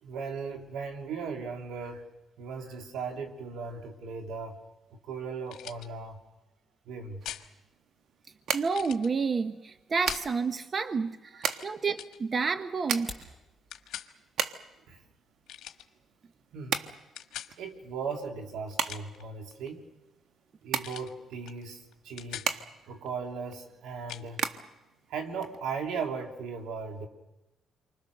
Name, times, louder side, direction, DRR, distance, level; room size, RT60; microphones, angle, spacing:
voice 1, 0.0-2.1 2.4-4.6 4.9-6.2 6.8-7.2 11.5-11.7 14.9-15.0 16.5-16.8 17.6-19.8 20.6-22.5 22.9-24.4 25.1-27.1, right 5 dB, 85° right, 3 dB, 3.1 m, -37 dB
sound 1, 5.5-5.9 7.2-7.5 8.7-9.1 10.1-10.3 11.4-11.7 12.0-12.2 13.7-14.1 15.5-15.9 17.2-17.5 18.7-19.2 20.8-21.1 21.5-21.6 21.9-22.5 24.1-24.3, left 11 dB, 80° left, 1.4 m, -42 dB
sound 2, 7.2-26.1, right 7 dB, 70° right, 1.3 m, -38 dB
voice 2, 8.5-13.2, right 5 dB, 40° right, 10 dB, 0.9 m, -30 dB
sound 3, 12.8-13.4, equal, 15° right, 6.5 m, -43 dB
28.5 x 24.5 x 6.6 m, 0.97 s
cardioid pair, 90°, 0 cm